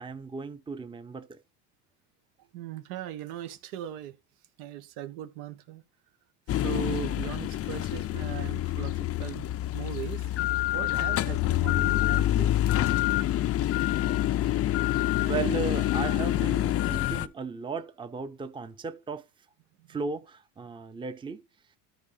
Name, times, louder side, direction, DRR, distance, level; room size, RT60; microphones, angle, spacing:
voice 1, 0.0-1.4 15.2-19.3 19.9-21.4, right 5 dB, 10° right, 0.6 m, -35 dB
voice 2, 2.5-4.2 4.6-5.8 6.5-12.8 19.8-20.0, right 11 dB, 80° right, 1.5 m, -39 dB
sound 1, 6.5-17.3, left 13 dB, 35° left, 0.4 m, -27 dB
13.0 x 4.6 x 4.1 m
supercardioid pair, 115°, 46 cm